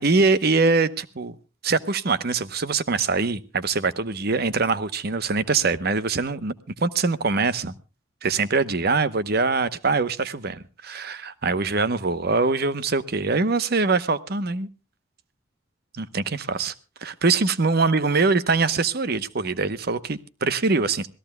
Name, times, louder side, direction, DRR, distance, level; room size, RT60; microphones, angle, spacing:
voice 1, 0.0-1.3 1.6-6.5 6.8-7.7 8.2-14.7 15.9-16.7 17.0-21.1, right 4 dB, 50° right, 14 dB, 0.9 m, -23 dB
26.0 x 17.0 x 2.3 m, 0.33 s
head